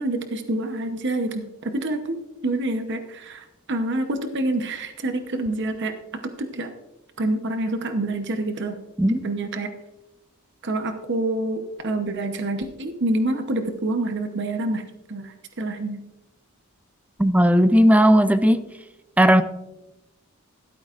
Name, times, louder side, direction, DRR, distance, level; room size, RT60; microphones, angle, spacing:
voice 1, 0.0-2.2 2.4-5.9 6.2-6.7 7.2-8.8 9.2-9.7 10.6-14.8 15.1-16.0, right 2 dB, 55° right, 7 dB, 0.9 m, -27 dB
voice 2, 17.2-18.7 19.2-19.4, equal, 5° right, 11 dB, 0.4 m, -16 dB
16.0 x 12.5 x 2.5 m, 0.97 s
head